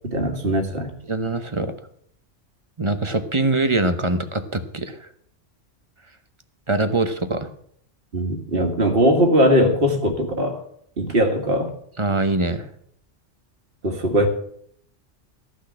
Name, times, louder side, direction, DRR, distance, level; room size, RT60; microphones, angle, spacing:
voice 1, 0.1-0.9 8.1-10.6 11.0-11.7 13.8-14.3, equal, 50° right, 4 dB, 2.0 m, -20 dB
voice 2, 1.1-1.7 2.8-5.1 6.7-7.5 12.0-12.7, right 2 dB, 25° right, 9 dB, 0.9 m, -23 dB
14.0 x 6.5 x 8.5 m, 0.66 s
omnidirectional pair, 1.2 m